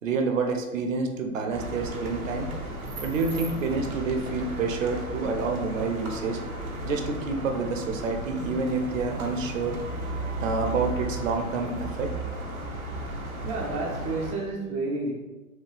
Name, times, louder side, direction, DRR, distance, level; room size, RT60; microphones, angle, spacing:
voice 1, 0.0-2.5 3.0-6.4 6.8-9.8 10.4-12.1, right 4 dB, 65° right, 4 dB, 0.8 m, -28 dB
sound 1, 1.5-14.3, right 1 dB, 85° right, 1.0 m, -35 dB
voice 2, 13.4-15.1, right 2 dB, 25° right, -2 dB, 0.5 m, -30 dB
6.3 x 2.3 x 3.3 m, 1.2 s
figure-of-eight pair, 110°, 42 cm